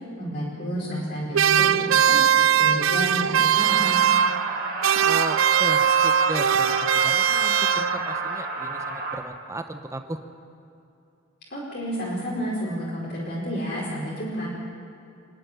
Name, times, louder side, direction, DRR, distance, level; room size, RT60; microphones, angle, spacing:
voice 1, 0.2-4.0 11.5-14.5, equal, 50° left, -5 dB, 4.4 m, -30 dB
sound 1, 1.3-4.6 4.8-8.2, right 9 dB, 70° right, 0.5 m, -20 dB
sound 2, 3.5-9.2, right 3 dB, 45° right, 2.7 m, -30 dB
voice 2, 5.0-10.2, right 1 dB, 15° right, 7 dB, 1.0 m, -35 dB
26.5 x 11.0 x 9.8 m, 2.7 s
head